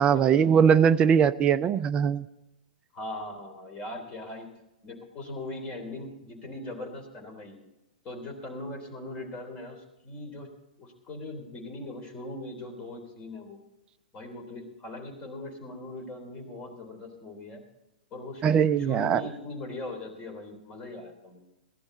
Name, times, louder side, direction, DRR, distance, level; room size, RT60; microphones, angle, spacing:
voice 1, 0.0-2.3 18.4-19.2, right 7 dB, 25° right, 13 dB, 0.5 m, -21 dB
voice 2, 2.9-4.5 4.8-7.6 8.0-10.5 10.8-13.6 14.1-17.6 18.1-18.4 18.8-21.4, left 2 dB, 25° left, 4 dB, 3.5 m, -40 dB
16.5 x 11.5 x 4.0 m, 0.96 s
figure-of-eight pair, 110°, 4 cm